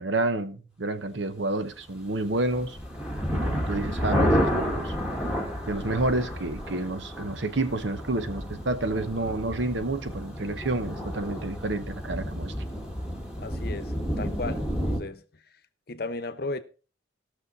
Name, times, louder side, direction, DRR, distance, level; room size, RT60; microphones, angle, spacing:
voice 1, 0.0-2.8 3.3-4.9 5.7-12.5, right 2 dB, 75° right, 1.0 m, -29 dB
sound 1, 2.2-15.0, equal, 5° right, 1.8 m, -30 dB
voice 2, 13.4-15.2 15.9-16.6, left 3 dB, 50° left, 0.8 m, -35 dB
17.0 x 6.5 x 4.0 m
head